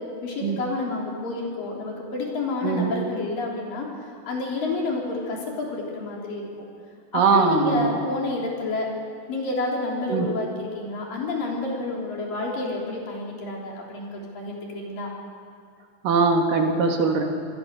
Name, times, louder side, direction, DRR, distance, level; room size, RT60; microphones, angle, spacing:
voice 1, 0.2-3.9 4.3-6.6 7.1-8.9 9.3-15.1, left 3 dB, 50° left, -2 dB, 4.9 m, -29 dB
voice 2, 7.1-8.0 10.1-10.3 16.0-17.2, right 4 dB, 60° right, 2 dB, 2.7 m, -21 dB
26.5 x 21.0 x 6.5 m, 2.2 s
omnidirectional pair, 5.7 m